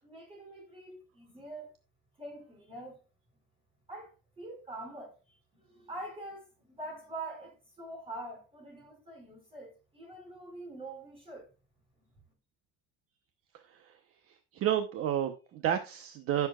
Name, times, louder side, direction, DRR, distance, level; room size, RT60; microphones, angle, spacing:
voice 1, 0.0-1.7 2.2-3.0 3.9-11.5, right 2 dB, 20° right, 5.3 m, -45 dB
voice 2, 13.5-13.9 14.3-16.5, right 10 dB, 45° right, 1.0 m, -31 dB
15.0 x 7.0 x 2.4 m
cardioid pair, 175°, 30 cm